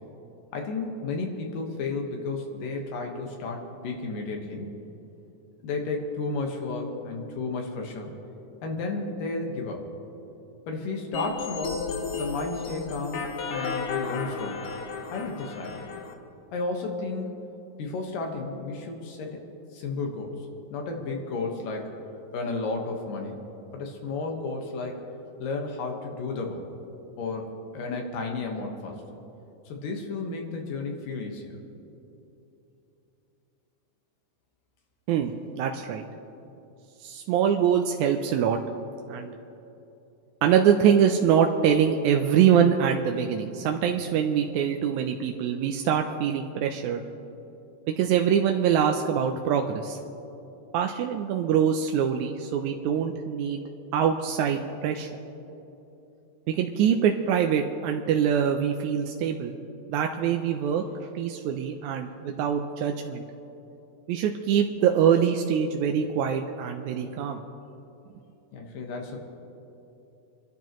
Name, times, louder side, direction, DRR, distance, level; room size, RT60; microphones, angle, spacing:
voice 1, 0.5-4.7 5.6-8.1 8.6-9.8 10.7-11.9 12.1-14.7 15.1-15.9 16.5-17.4 17.8-19.4 19.7-21.9 22.3-23.4 23.7-25.0 25.4-26.6 27.2-29.0 29.7-31.6 68.5-69.2, left 3 dB, 80° left, 1 dB, 3.1 m, -33 dB
sound 1, 11.1-16.1, left 5 dB, 65° left, 2.0 m, -33 dB
voice 2, 35.1-36.0 37.0-38.6 39.1-39.3 40.4-47.0 47.9-50.0 50.7-53.6 53.9-55.1 56.5-59.6 59.9-63.2 64.1-67.4, right 8 dB, 80° right, 4 dB, 1.8 m, -24 dB
27.0 x 12.0 x 3.1 m, 2.9 s
omnidirectional pair, 3.8 m